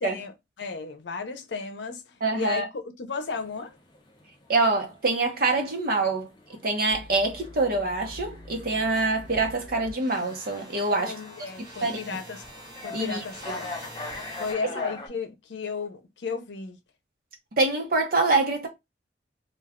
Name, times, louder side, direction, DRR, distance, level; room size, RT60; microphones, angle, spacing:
voice 1, 0.0-3.8 11.0-12.4 12.8-13.7 14.4-16.8, left 4 dB, 90° left, 0.6 m, -34 dB
voice 2, 2.2-2.7 4.5-6.3 6.6-11.1 11.6-12.2 12.9-13.2 17.6-18.7, right 3 dB, 55° right, 0.9 m, -25 dB
sound 1, 3.3-15.1, left 3 dB, 25° left, 0.6 m, -43 dB
sound 2, 6.9-14.5, equal, 20° right, 1.2 m, -45 dB
2.4 x 2.3 x 3.5 m
head